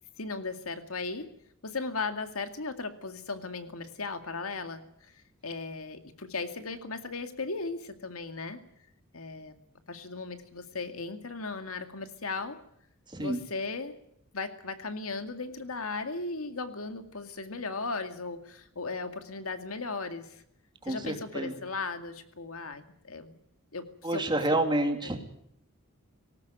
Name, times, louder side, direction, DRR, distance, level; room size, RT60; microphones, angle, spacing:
voice 1, 0.2-1.3 1.6-5.1 5.4-8.6 9.1-9.5 9.9-12.6 13.2-13.9 14.3-20.4 20.9-23.4 23.7-24.2 24.5-24.6 25.0-25.1, left 3 dB, 80° left, 8 dB, 2.2 m, -37 dB
voice 2, 13.1-13.4 20.8-21.6 24.0-25.2, right 1 dB, 20° right, 5 dB, 2.8 m, -29 dB
19.5 x 18.0 x 9.1 m, 0.71 s
head